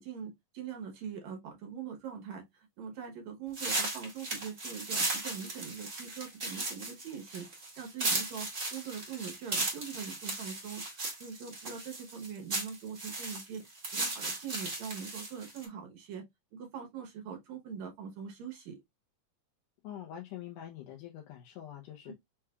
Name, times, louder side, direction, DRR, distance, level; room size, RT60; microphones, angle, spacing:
voice 1, 0.0-7.5 7.8-13.6 13.9-16.3 16.5-18.8 22.1-22.2, right 7 dB, 65° right, 2.0 m, -42 dB
sound 1, 3.5-15.7, right 2 dB, 30° right, 1.4 m, -36 dB
voice 2, 19.8-22.1, left 11 dB, 75° left, 2.2 m, -45 dB
5.7 x 3.2 x 2.3 m
omnidirectional pair, 4.0 m